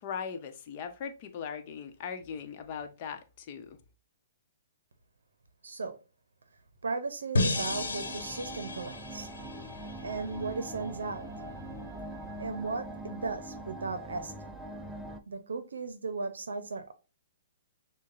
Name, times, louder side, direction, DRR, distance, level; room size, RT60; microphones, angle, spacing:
voice 1, 0.0-3.8, left 7 dB, 45° left, 0.8 m, -39 dB
voice 2, 5.6-6.0 6.8-9.3 10.0-11.3 12.4-14.3 15.3-16.9, right 4 dB, 85° right, 0.6 m, -36 dB
sound 1, 7.3-10.5, left 1 dB, 90° left, 1.1 m, -33 dB
sound 2, 7.5-15.2, right 1 dB, 5° right, 0.4 m, -42 dB
6.3 x 2.2 x 2.5 m
hypercardioid pair, 140°, 0 cm